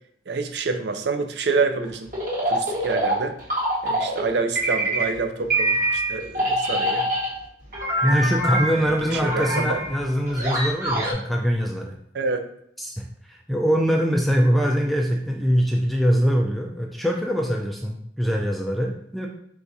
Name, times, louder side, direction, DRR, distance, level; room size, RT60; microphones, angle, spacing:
voice 1, 0.3-2.1 2.4-3.4 3.8-7.1 8.7-9.8 12.1-12.4, right 4 dB, 70° right, 7 dB, 0.5 m, -27 dB
sound 1, 2.1-4.3 4.5-5.2 5.5-7.4 7.7-11.1, right 1 dB, 45° right, 1.4 m, -25 dB
voice 2, 8.0-11.9 12.8-19.3, equal, ahead, 0 dB, 0.3 m, -23 dB
4.7 x 3.4 x 2.7 m, 0.70 s
head